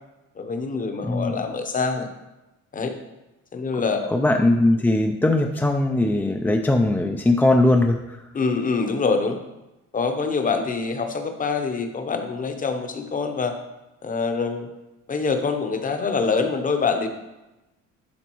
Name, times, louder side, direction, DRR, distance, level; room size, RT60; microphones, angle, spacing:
voice 1, 0.4-2.1 2.7-2.9 3.5-4.1 8.3-9.4 9.9-13.5 14.0-14.7 15.1-17.1, left 4 dB, 25° left, 6 dB, 0.8 m, -25 dB
voice 2, 1.0-1.3 4.1-8.0, left 2 dB, 5° left, 3 dB, 0.3 m, -20 dB
11.5 x 3.9 x 3.0 m, 1.0 s
cardioid pair, 125°, 30 cm